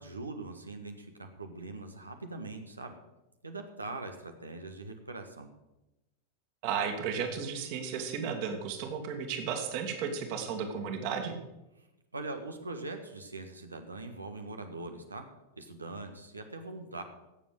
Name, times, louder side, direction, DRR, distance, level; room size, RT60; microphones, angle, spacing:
voice 1, 0.0-3.0 3.4-5.5 11.8-11.9 12.1-15.2 15.6-17.0, right 2 dB, 80° right, 5 dB, 1.4 m, -42 dB
voice 2, 6.6-11.3, right 6 dB, 45° right, 5 dB, 2.2 m, -34 dB
17.0 x 7.3 x 6.5 m, 0.97 s
figure-of-eight pair, 90°, 0 cm